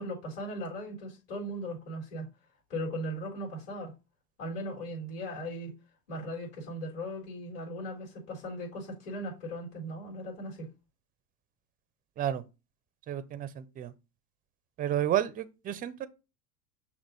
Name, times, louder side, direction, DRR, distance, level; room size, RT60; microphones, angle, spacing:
voice 1, 0.0-2.3 2.7-3.9 4.4-5.7 6.1-10.7, equal, 50° left, 4.0 m, -38 dB
voice 2, 13.1-13.9 14.8-16.1, right 11 dB, 20° right, 0.4 m, -31 dB
6.3 x 2.9 x 5.3 m
hypercardioid pair, 90°, 49 cm